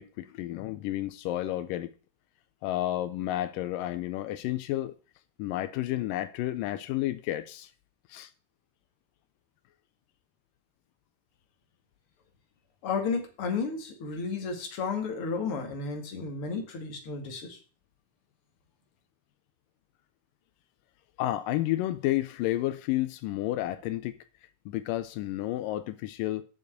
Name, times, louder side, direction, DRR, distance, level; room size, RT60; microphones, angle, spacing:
voice 1, 0.0-1.9 2.6-4.9 5.4-7.7 8.1-8.3 21.2-24.2 24.7-26.4, left 14 dB, 85° left, 2.3 m, -31 dB
voice 2, 12.8-17.6, left 5 dB, 45° left, 2.7 m, -32 dB
7.4 x 7.1 x 7.9 m
omnidirectional pair, 3.8 m